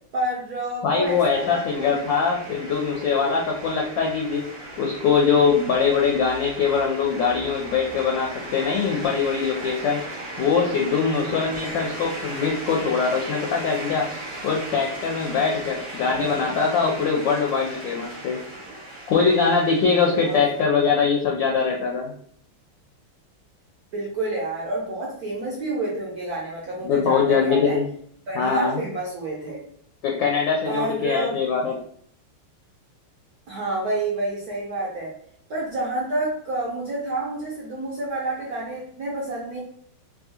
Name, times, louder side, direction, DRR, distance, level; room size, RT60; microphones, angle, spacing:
voice 1, 0.1-2.1 2.5-3.0 20.2-20.4 23.9-27.8 28.3-29.6 30.7-31.3 33.5-35.1 35.5-39.6, right 2 dB, 70° right, -4 dB, 0.9 m, -29 dB
voice 2, 0.8-4.4 4.8-10.0 10.4-14.1 14.4-18.4 19.1-22.1 26.8-27.8 28.3-28.8 30.0-31.7, left 5 dB, 75° left, -1 dB, 1.1 m, -22 dB
sound 1, 1.0-20.6, right 1 dB, 45° right, 1.1 m, -37 dB
3.6 x 2.3 x 2.8 m, 0.64 s
omnidirectional pair, 2.4 m